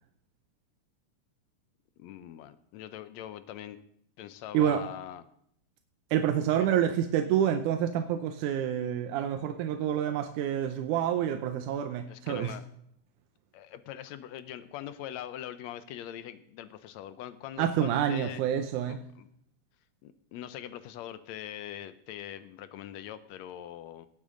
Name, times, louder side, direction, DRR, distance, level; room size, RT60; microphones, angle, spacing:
voice 1, 2.0-3.8 4.2-5.2 6.6-6.7 12.1-12.6 13.5-18.4 18.9-19.3 20.0-24.1, left 11 dB, 75° left, 13 dB, 1.7 m, -42 dB
voice 2, 6.1-12.5 17.6-19.0, right 9 dB, 85° right, 7 dB, 2.2 m, -28 dB
18.0 x 8.7 x 3.8 m, 0.70 s
omnidirectional pair, 3.6 m